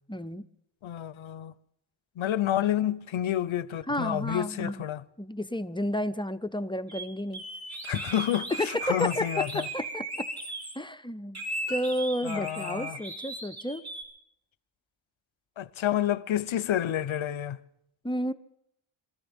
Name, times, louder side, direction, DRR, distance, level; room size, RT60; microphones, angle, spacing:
voice 1, 0.1-0.4 3.9-4.7 5.2-7.4 8.6-10.0 10.8-11.4 11.7-13.8 18.0-18.3, left 1 dB, 10° left, 0.5 m, -31 dB
voice 2, 0.8-1.5 2.2-5.0 7.9-9.7 12.2-13.0 15.6-17.6, left 11 dB, 75° left, 0.7 m, -29 dB
sound 1, 6.9-7.1 7.3-10.7 11.3-14.0, right 2 dB, 50° right, 4.0 m, -37 dB
sound 2, 11.7-12.8, right 1 dB, 85° right, 6.2 m, -51 dB
26.0 x 13.5 x 3.5 m
wide cardioid pair, 70°, 49 cm